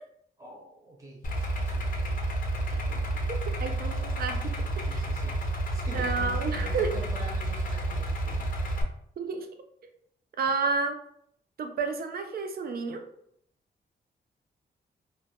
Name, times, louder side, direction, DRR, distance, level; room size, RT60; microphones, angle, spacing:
voice 1, 0.4-2.1 4.8-5.4 5.7-6.3 6.6-8.5, right 1 dB, 15° right, -2 dB, 0.7 m, -46 dB
Idling, 1.2-8.8, right 1 dB, 50° left, 0.5 m, -30 dB
voice 2, 3.5-5.1 5.9-6.9 9.2-9.5 10.4-11.0 11.6-13.0, right 4 dB, 60° right, 5 dB, 0.4 m, -31 dB
2.2 x 2.1 x 2.8 m, 0.69 s
cardioid pair, 100°, 18 cm